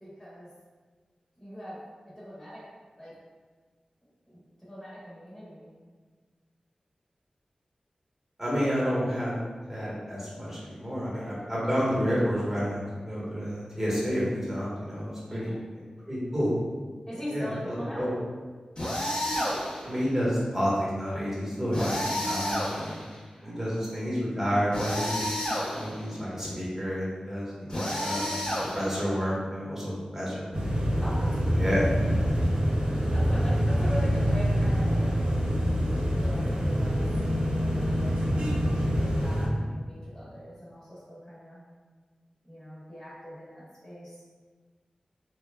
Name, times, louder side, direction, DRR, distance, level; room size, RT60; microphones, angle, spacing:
voice 1, 0.0-0.5 1.4-1.9 2.1-2.6 3.0-3.1 4.2-5.7 15.3-15.6 17.1-18.1 23.4-23.9 31.0-31.9 33.1-35.1 36.1-38.4 39.0-41.7 42.4-44.2, equal, 15° left, -10 dB, 1.0 m, -41 dB
voice 2, 8.4-9.3 9.7-12.8 13.1-15.5 16.1-16.6 17.3-18.1 19.8-23.0 23.4-25.4 25.7-28.3 28.6-30.5 31.5-31.9, equal, 15° right, -8 dB, 1.2 m, -30 dB
sound 1, 18.8-19.9 21.7-23.2 24.7-26.0 27.7-29.1, equal, 40° left, 0.7 m, -31 dB
sound 2, 30.5-39.5, equal, 60° right, 0.5 m, -25 dB
2.9 x 2.2 x 2.3 m, 1.4 s
cardioid pair, 45°, 2 cm